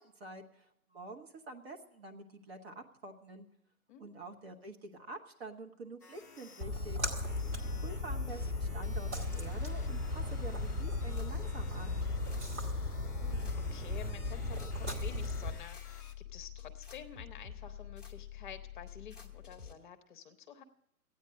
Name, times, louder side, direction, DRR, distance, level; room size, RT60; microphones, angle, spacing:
voice 1, 0.0-3.4 4.0-7.0 7.8-12.0, right 2 dB, 45° right, 3 dB, 1.2 m, -47 dB
sound 1, 6.0-16.1, left 5 dB, 15° left, 0.4 m, -55 dB
Splash splatter, 6.6-15.5, left 2 dB, 20° right, 1.3 m, -36 dB
sound 2, 10.6-19.7, left 9 dB, ahead, 1.0 m, -48 dB
voice 2, 12.5-20.6, left 7 dB, 35° left, 7 dB, 0.9 m, -51 dB
13.0 x 9.3 x 7.5 m, 0.77 s
figure-of-eight pair, 135°, 44 cm